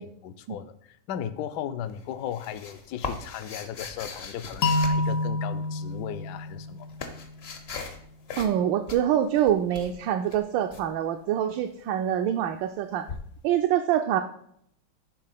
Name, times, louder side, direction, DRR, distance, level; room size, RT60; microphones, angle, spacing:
voice 1, 0.2-6.9, left 9 dB, 70° left, 11 dB, 1.1 m, -36 dB
sound 1, 1.9-5.7 6.4-8.0 8.3-8.6 8.9-10.8 13.1-13.2, left 4 dB, 50° left, 0.7 m, -39 dB
sound 2, 4.6-7.5, left 2 dB, 90° left, 0.7 m, -28 dB
voice 2, 8.4-13.1 13.4-14.2, right 10 dB, 75° right, 6 dB, 1.2 m, -25 dB
10.0 x 3.7 x 5.8 m, 0.70 s
omnidirectional pair, 2.2 m